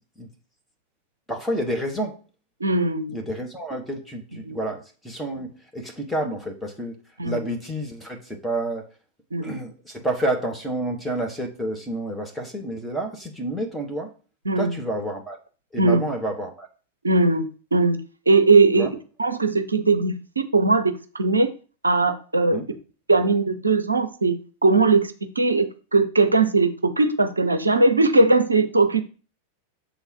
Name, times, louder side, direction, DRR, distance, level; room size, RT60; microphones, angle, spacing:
voice 1, 1.3-2.2 3.1-6.9 7.2-8.9 9.4-14.1 14.6-15.4 15.7-16.7 18.7-18.9 22.5-22.6, right 1 dB, ahead, 1.4 m, -29 dB
voice 2, 2.6-3.2 4.4-4.6 7.2-7.4 9.3-9.5 14.5-14.7 15.8-16.0 17.0-18.0 18.3-18.9 19.2-21.5 21.8-22.6 23.1-24.4 24.6-29.0, right 3 dB, 80° right, 0.5 m, -19 dB
6.7 x 3.9 x 4.6 m
figure-of-eight pair, 90°, 0 cm